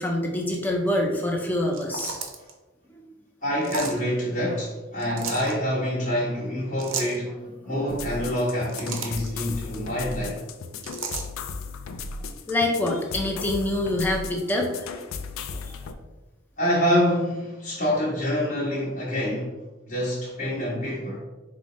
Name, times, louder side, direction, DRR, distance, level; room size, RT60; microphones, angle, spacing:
voice 1, 0.0-2.2 2.9-3.1 9.4-9.5 12.5-14.9, left 1 dB, 10° left, 0.5 m, -26 dB
sound 1, 1.7-2.5 3.6-4.0 5.0-5.5 6.8-7.2 8.4-9.3 10.8-11.3, right 5 dB, 70° right, 0.6 m, -33 dB
voice 2, 3.4-7.4 7.6-10.4 15.5-15.6 16.6-19.5 19.9-21.2, equal, 35° left, 1.2 m, -26 dB
sound 2, 7.9-15.9, left 4 dB, 70° left, 0.3 m, -36 dB
4.9 x 2.1 x 3.8 m
head